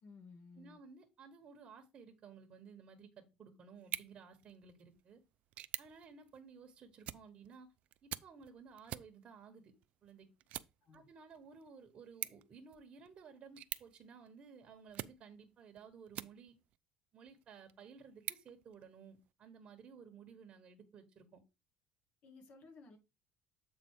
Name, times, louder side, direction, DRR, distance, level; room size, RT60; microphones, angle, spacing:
voice 1, 0.0-0.8 10.8-11.0 22.2-23.0, left 4 dB, 55° left, 2.1 m, -56 dB
voice 2, 0.5-5.2 5.8-7.7 8.0-9.7 10.0-10.3 10.9-16.5 17.1-21.4, right 6 dB, 40° right, 1.4 m, -56 dB
sound 1, 3.8-16.8 17.3-19.3, right 13 dB, 60° right, 0.4 m, -49 dB
7.7 x 4.0 x 4.7 m
cardioid pair, 125°, 3 cm